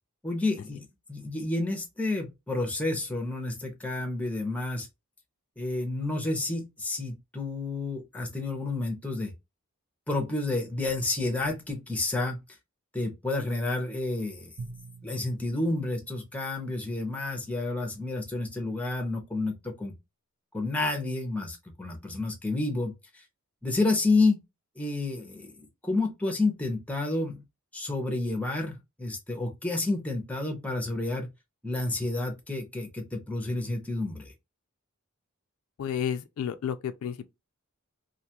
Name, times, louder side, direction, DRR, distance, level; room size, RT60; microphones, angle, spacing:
voice 1, 0.2-4.9 5.6-9.3 10.1-12.4 12.9-14.5 15.0-20.0 20.5-23.2 23.6-24.4 24.8-27.4 27.7-31.3 31.6-34.3, left 2 dB, 5° left, 0.6 m, -30 dB
Drum, 14.6-17.0, right 3 dB, 55° right, 0.5 m, -46 dB
voice 2, 35.8-37.3, left 8 dB, 65° left, 0.3 m, -31 dB
2.5 x 2.3 x 2.8 m
head